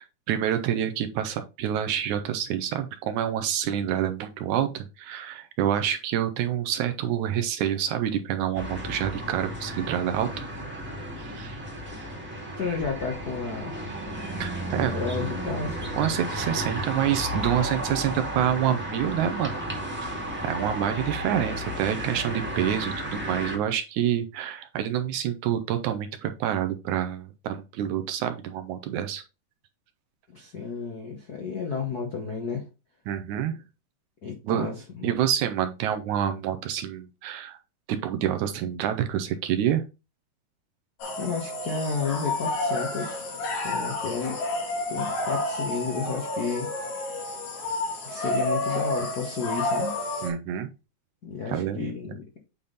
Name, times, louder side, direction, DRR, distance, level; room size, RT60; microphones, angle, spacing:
voice 1, 0.0-10.5 11.2-11.6 14.4-14.9 15.9-19.6 20.0-29.2 33.1-33.6 34.4-34.7 35.0-37.6 37.9-39.8 50.2-50.7 51.5-51.9, right 10 dB, 75° right, 2.0 m, -27 dB
sound 1, 8.5-23.6, equal, 5° right, 1.4 m, -33 dB
voice 2, 12.6-13.7 14.7-15.8 30.3-32.6 34.2-35.1 41.2-43.3 43.6-44.4 44.9-47.4 48.0-49.9 51.2-52.2, left 5 dB, 55° left, 1.0 m, -32 dB
sound 2, 41.0-50.3, left 2 dB, 90° left, 3.8 m, -30 dB
8.5 x 3.7 x 3.9 m
omnidirectional pair, 3.8 m